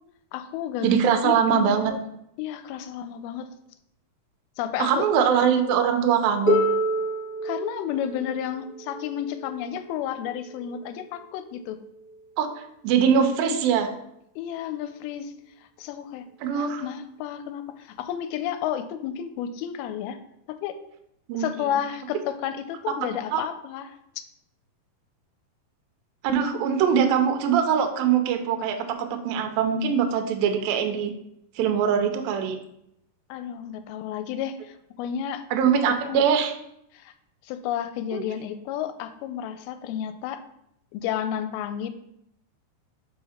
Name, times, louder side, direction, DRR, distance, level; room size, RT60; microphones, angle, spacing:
voice 1, 0.3-2.0 2.4-3.5 4.6-5.1 7.4-11.8 14.4-15.3 15.8-16.3 16.5-20.2 20.5-20.8 21.3-23.9 33.3-35.5 35.9-36.2 36.9-37.1 37.4-40.4 40.9-41.9, left 9 dB, 80° left, 10 dB, 2.3 m, -31 dB
voice 2, 0.8-1.9 4.8-6.6 12.4-12.5 12.8-13.9 16.4-16.8 21.3-21.5 23.3-23.4 26.2-31.1 31.6-32.6 35.5-36.5 38.1-38.2, right 7 dB, 75° right, 5 dB, 2.3 m, -22 dB
Harp, 6.5-12.3 13.3-13.4, equal, 35° left, 1.6 m, -29 dB
5.7 x 4.6 x 4.2 m, 0.77 s
omnidirectional pair, 4.6 m